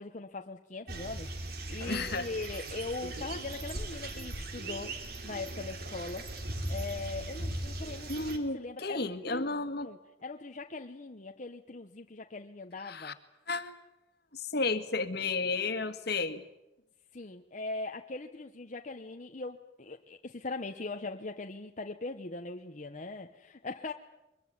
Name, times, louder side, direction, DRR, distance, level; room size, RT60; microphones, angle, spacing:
voice 1, 0.0-5.0 5.2-6.3 6.7-9.5 9.8-13.2 17.1-23.9, left 3 dB, 45° left, 4 dB, 1.1 m, -40 dB
sound 1, 0.9-8.4, right 1 dB, 60° right, 3.4 m, -39 dB
voice 2, 1.9-2.3 8.1-9.9 12.8-13.1 13.5-13.7 14.3-16.4, left 3 dB, 60° left, 10 dB, 2.0 m, -32 dB
24.0 x 22.0 x 9.5 m, 0.93 s
head